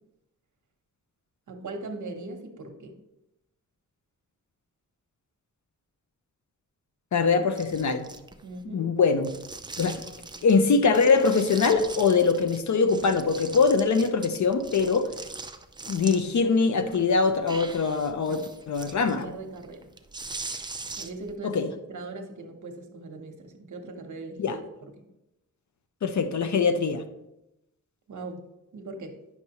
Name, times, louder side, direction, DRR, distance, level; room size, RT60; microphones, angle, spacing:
voice 1, 1.5-3.0 8.4-8.9 18.2-18.4 19.0-19.9 21.0-24.9 28.1-28.4 28.7-29.2, right 2 dB, 65° right, 5 dB, 1.0 m, -40 dB
voice 2, 7.1-8.1 8.7-9.3 9.8-10.0 10.4-15.1 15.9-19.3 21.4-21.7 24.4-24.6 26.0-27.0, left 4 dB, 60° left, 8 dB, 0.7 m, -23 dB
sound 1, 7.6-8.6 9.2-10.6 10.9-12.6 12.9-16.4 16.8-21.3, right 3 dB, 15° right, 0.3 m, -41 dB
9.4 x 5.9 x 2.9 m, 0.91 s
wide cardioid pair, 135°, 32 cm